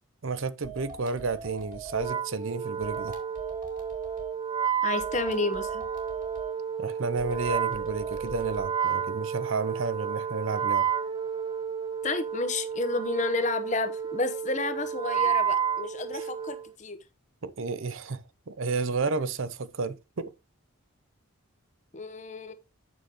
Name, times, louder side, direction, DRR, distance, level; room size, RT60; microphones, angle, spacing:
voice 1, 0.2-3.2 6.8-10.9 16.1-16.2 17.4-20.3, right 4 dB, 75° right, 0.7 m, -31 dB
sound 1, 0.6-2.2 2.8-4.3 5.0-6.5 7.2-8.7, right 4 dB, 40° right, 2.6 m, -42 dB
Wind instrument woodwind instrument, 1.9-16.7, right 7 dB, 20° right, 0.3 m, -31 dB
voice 2, 4.8-5.9 12.0-17.0 21.9-22.5, left 3 dB, 35° left, 1.0 m, -31 dB
9.0 x 6.6 x 2.9 m
head